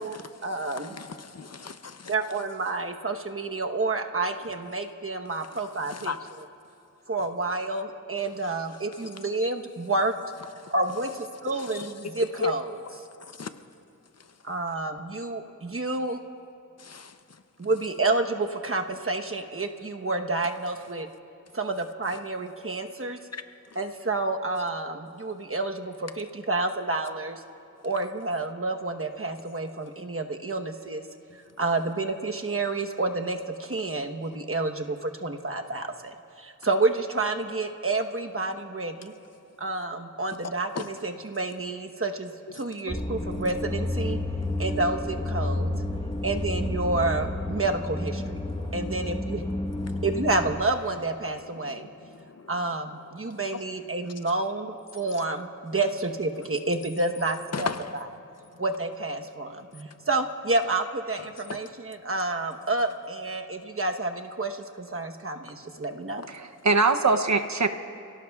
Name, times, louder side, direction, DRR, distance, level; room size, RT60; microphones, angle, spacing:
voice 1, 0.0-1.0 2.1-6.1 7.1-10.1 10.7-11.1 11.4-12.7 14.4-16.2 17.6-21.1 21.5-23.2 23.7-27.4 27.8-31.1 31.6-39.1 39.6-44.2 44.6-45.7 46.2-48.4 48.7-49.4 50.0-51.9 52.5-57.7 58.6-66.2, right 2 dB, 45° right, 4 dB, 1.1 m, -29 dB
voice 2, 0.6-2.1 5.9-6.2 10.6-10.7 11.5-11.9 12.4-12.5 13.2-13.5 16.8-17.2 23.3-23.4 40.7-40.9 46.0-46.1 48.5-48.9 49.9-50.0 51.6-52.5 53.3-53.6 57.5-58.0 61.5-61.6 65.5-65.6 66.2-66.3, left 5 dB, 50° left, 10 dB, 0.7 m, -36 dB
sound 1, 42.9-50.6, left 2 dB, 15° left, 1.1 m, -30 dB
voice 3, 66.3-67.7, right 3 dB, 60° right, 7 dB, 0.8 m, -22 dB
28.0 x 17.5 x 2.4 m, 2.5 s
wide cardioid pair, 45°, 32 cm